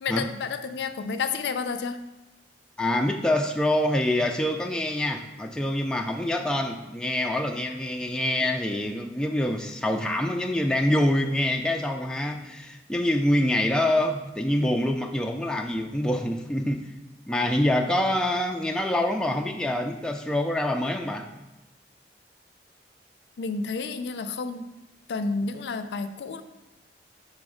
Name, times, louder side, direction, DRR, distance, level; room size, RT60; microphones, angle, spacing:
voice 1, 0.0-2.0 23.4-24.7 25.1-26.4, left 4 dB, 75° left, 9 dB, 0.4 m, -30 dB
voice 2, 2.8-16.9 17.3-21.3, left 1 dB, 5° left, 3 dB, 0.3 m, -25 dB
5.2 x 3.8 x 4.9 m, 1.0 s
head